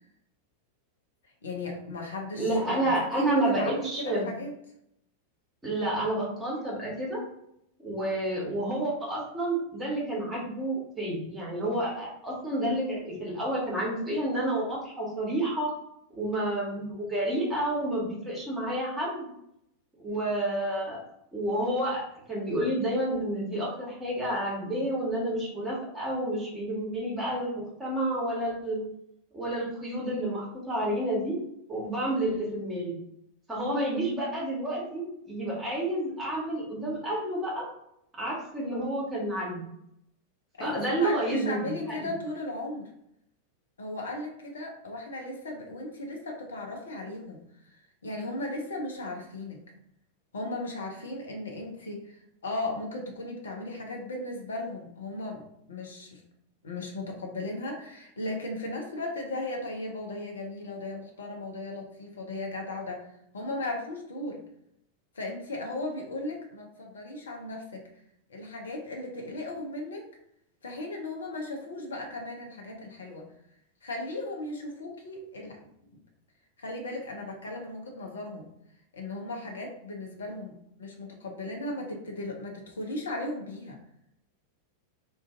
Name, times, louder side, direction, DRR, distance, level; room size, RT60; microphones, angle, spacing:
voice 1, 1.2-4.5 40.6-42.9 43.8-49.6 50.3-56.2 56.6-64.4 65.1-67.9 68.3-70.1 70.6-73.3 73.8-76.0 76.6-78.5 78.9-80.5 80.8-83.8, left 2 dB, 70° left, 1 dB, 0.5 m, -36 dB
voice 2, 2.3-4.3 5.6-7.2 7.8-15.7 16.1-19.3 20.0-21.0 21.3-22.0 22.3-28.8 29.3-31.4 31.7-33.0 33.5-37.7 38.2-39.7 40.6-42.1, right 1 dB, 15° right, -5 dB, 1.1 m, -30 dB
2.5 x 2.3 x 3.6 m, 0.76 s
figure-of-eight pair, 90°, 0 cm